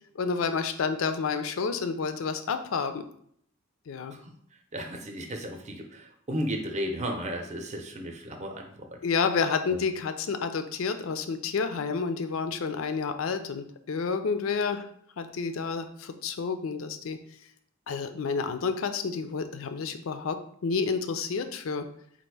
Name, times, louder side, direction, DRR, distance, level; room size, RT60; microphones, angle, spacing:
voice 1, 0.2-3.0 3.9-4.2 9.0-14.9 15.2-17.2 17.9-21.9, left 5 dB, 80° left, 9 dB, 0.4 m, -30 dB
voice 2, 4.7-9.0 9.7-9.8, equal, 35° right, 3 dB, 0.6 m, -34 dB
4.1 x 2.5 x 4.6 m, 0.66 s
head